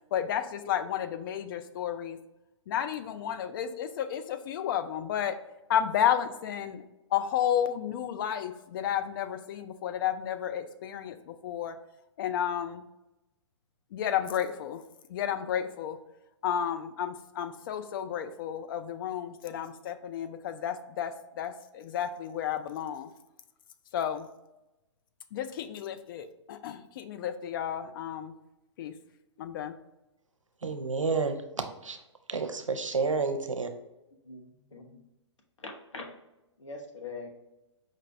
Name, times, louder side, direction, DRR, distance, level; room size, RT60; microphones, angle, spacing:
voice 1, 0.1-2.2 2.7-5.4 5.7-6.8 7.1-11.8 12.2-12.8 13.9-14.8 15.1-16.0 16.4-23.1 23.9-24.3 25.3-28.3 28.8-28.9 29.4-29.7, left 9 dB, 45° left, 9 dB, 0.5 m, -32 dB
voice 2, 30.6-31.4 31.8-32.0 32.3-33.7, right 4 dB, 90° right, 7 dB, 0.6 m, -29 dB
voice 3, 34.7-35.0 35.6-36.1 36.6-37.3, left 3 dB, 75° left, 3 dB, 1.0 m, -42 dB
5.1 x 2.7 x 3.2 m, 0.95 s
figure-of-eight pair, 120°, 16 cm